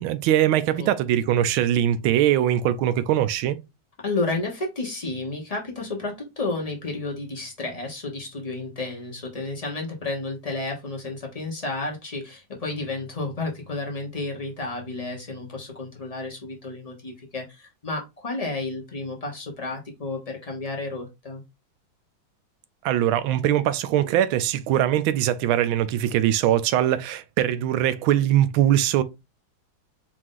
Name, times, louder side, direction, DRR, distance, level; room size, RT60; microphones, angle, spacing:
voice 1, 0.0-3.6 22.8-29.0, right 11 dB, 85° right, 1.4 m, -22 dB
voice 2, 4.0-21.4, left 2 dB, 50° left, 0.4 m, -31 dB
4.6 x 2.5 x 3.6 m
omnidirectional pair, 2.2 m